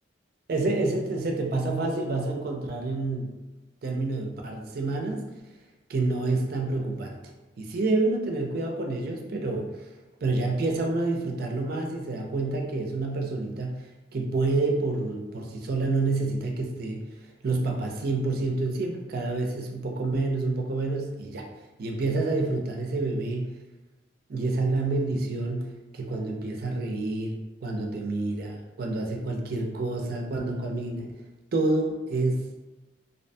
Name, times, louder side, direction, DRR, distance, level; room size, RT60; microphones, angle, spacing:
voice 1, 0.5-3.3 3.8-5.3 5.9-7.2 7.6-9.7 10.2-13.9 14.1-21.5 21.8-23.6 24.3-31.1 31.5-32.5, right 2 dB, 55° right, 2 dB, 0.4 m, -28 dB
2.6 x 2.1 x 2.5 m, 1.1 s
head